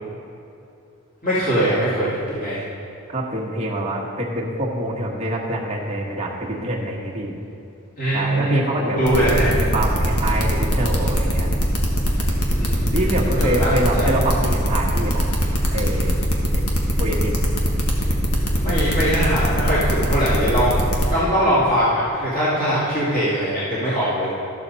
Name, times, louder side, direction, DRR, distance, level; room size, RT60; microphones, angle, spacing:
voice 1, 1.2-2.6 8.0-9.5 12.5-13.7 14.0-14.2 18.6-20.8 21.1-24.3, equal, 40° left, -10 dB, 2.3 m, -21 dB
voice 2, 3.1-7.4 8.1-11.5 12.9-15.4 15.7-16.2 17.0-17.3, right 1 dB, 30° right, -3 dB, 1.3 m, -25 dB
sound 1, 9.1-21.0, equal, 85° left, 1.4 m, -21 dB
13.0 x 6.9 x 4.1 m, 2.8 s
head